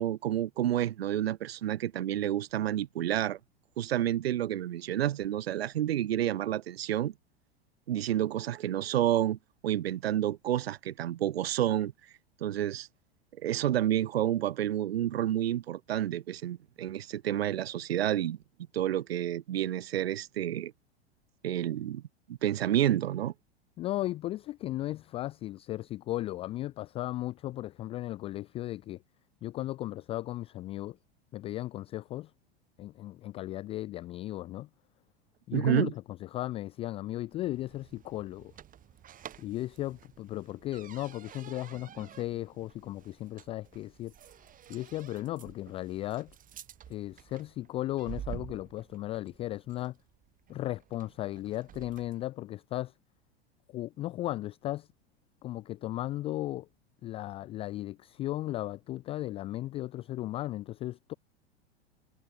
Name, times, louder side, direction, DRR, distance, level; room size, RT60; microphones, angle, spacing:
voice 1, 0.0-3.4 3.8-7.1 7.9-9.4 9.6-11.9 12.4-12.9 13.4-18.4 18.7-20.7 21.4-22.0 22.3-23.3 35.5-35.9, right 12 dB, 70° right, 0.6 m, -29 dB
voice 2, 23.8-29.0 29.4-31.0 31.3-32.3 32.8-34.7 35.5-38.5 39.4-44.1 44.7-46.4 46.9-50.0 50.5-52.9 53.7-54.9 55.4-56.7 57.0-61.1, left 15 dB, 20° left, 0.3 m, -36 dB
sound 1, 37.2-52.3, right 10 dB, 25° right, 1.7 m, -50 dB
figure-of-eight pair, 85°, 32 cm